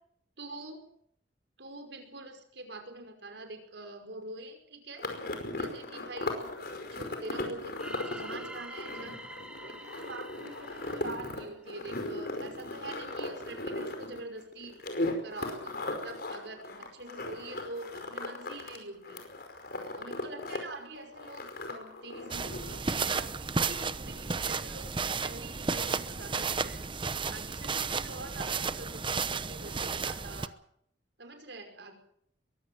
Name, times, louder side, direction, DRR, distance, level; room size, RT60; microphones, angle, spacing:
voice 1, 0.4-0.9 1.6-5.1 5.5-6.5 6.9-9.2 9.7-14.8 15.2-19.2 19.9-24.9 25.2-26.9 27.3-30.6 31.2-31.9, right 2 dB, 70° right, 6 dB, 5.4 m, -45 dB
sound 1, 5.0-18.8 19.0-20.6 20.8-22.8, left 2 dB, 60° left, 5.1 m, -37 dB
sound 2, 7.8-11.8, right 1 dB, 5° right, 1.9 m, -46 dB
sound 3, 22.3-30.5, right 4 dB, 30° right, 0.9 m, -33 dB
22.5 x 16.0 x 7.7 m, 0.68 s
head